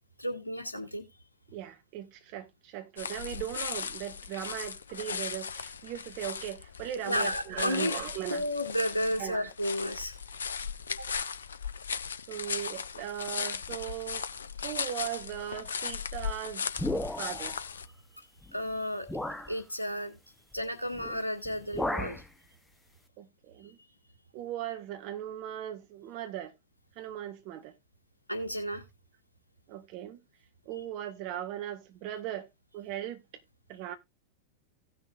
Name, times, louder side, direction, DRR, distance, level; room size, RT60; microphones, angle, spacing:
voice 1, 0.2-1.0 7.0-8.0 8.3-10.2 11.0-11.1 18.5-19.1 19.5-20.2 20.5-22.2 23.6-23.7 28.3-28.8, equal, 85° left, 1.8 m, -32 dB
voice 2, 1.5-8.4 9.2-9.5 12.3-14.2 14.6-16.6 17.2-17.6 23.2-23.8 24.3-26.5 27.0-27.7 29.7-30.2 30.6-32.5 32.7-33.2 33.7-33.9, right 11 dB, 45° right, 1.5 m, -38 dB
sound 1, 3.0-17.9, left 6 dB, 70° left, 0.6 m, -37 dB
sound 2, 16.8-17.5 18.4-18.5 19.1-19.5 20.9-21.2 21.4-22.3, left 1 dB, 5° left, 0.9 m, -34 dB
17.0 x 6.1 x 2.5 m
figure-of-eight pair, 90°, 0 cm